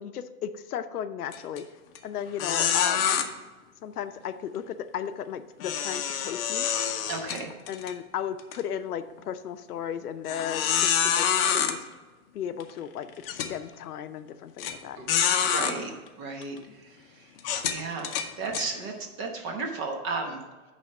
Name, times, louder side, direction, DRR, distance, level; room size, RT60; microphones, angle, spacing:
voice 1, 0.0-1.6 2.0-3.1 3.8-6.7 7.7-11.3 11.5-11.8 12.3-15.0 16.7-16.8, left 9 dB, 80° left, 10 dB, 0.7 m, -35 dB
sound 1, 1.3-1.6 1.9-2.0 2.4-3.2 5.6-7.9 8.4-8.6 9.2-9.3 10.3-11.7 12.6-12.7 13.2-13.5 14.6-14.7 15.1-15.7 16.4-16.6 17.4-18.7, left 8 dB, 40° left, 0.7 m, -26 dB
voice 2, 7.1-7.5 15.0-15.1 15.4-15.9 16.2-16.6 17.7-18.1 18.4-18.9 19.2-20.4, right 4 dB, 25° right, 2 dB, 1.1 m, -33 dB
9.3 x 3.5 x 6.6 m, 1.2 s
hypercardioid pair, 145°, 45 cm